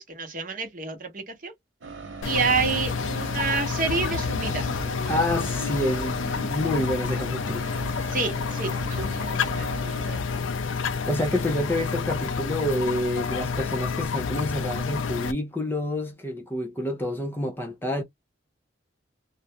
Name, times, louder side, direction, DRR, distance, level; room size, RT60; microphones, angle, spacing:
voice 1, 0.0-1.5 2.2-4.7 8.1-10.4, right 4 dB, 45° right, 0.8 m, -29 dB
sound 1, 1.8-10.2, right 3 dB, 80° right, 0.9 m, -40 dB
sound 2, 2.2-15.3, left 5 dB, 85° left, 0.4 m, -29 dB
voice 2, 5.1-8.2 11.1-18.0, left 1 dB, 10° left, 0.5 m, -28 dB
2.4 x 2.1 x 2.8 m
head